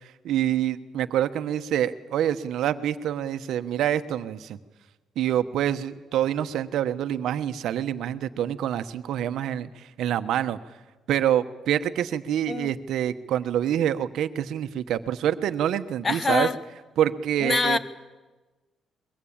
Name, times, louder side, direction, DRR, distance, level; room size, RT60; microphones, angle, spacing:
voice 1, 0.2-4.6 5.2-10.6 11.1-16.5 17.0-17.8, right 10 dB, 80° right, 11 dB, 1.1 m, -26 dB
voice 2, 16.0-16.6 17.4-17.8, left 3 dB, 30° left, 13 dB, 1.4 m, -24 dB
23.5 x 22.0 x 8.8 m, 1.2 s
cardioid pair, 90°, 0 cm